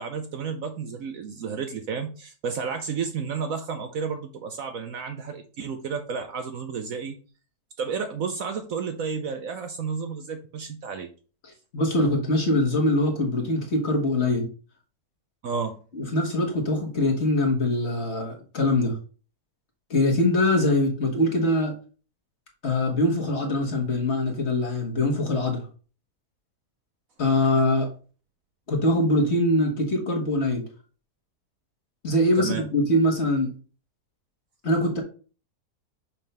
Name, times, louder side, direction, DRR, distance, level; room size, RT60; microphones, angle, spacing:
voice 1, 0.0-7.2 7.8-11.1 15.4-15.8 32.4-32.6, right 5 dB, 65° right, 7 dB, 1.0 m, -31 dB
voice 2, 11.4-14.5 15.9-19.0 19.9-21.7 22.6-25.7 27.2-27.9 28.7-30.6 32.0-33.5 34.6-35.0, left 1 dB, 40° left, 1 dB, 1.6 m, -23 dB
5.7 x 3.6 x 5.4 m, 0.38 s
omnidirectional pair, 1.8 m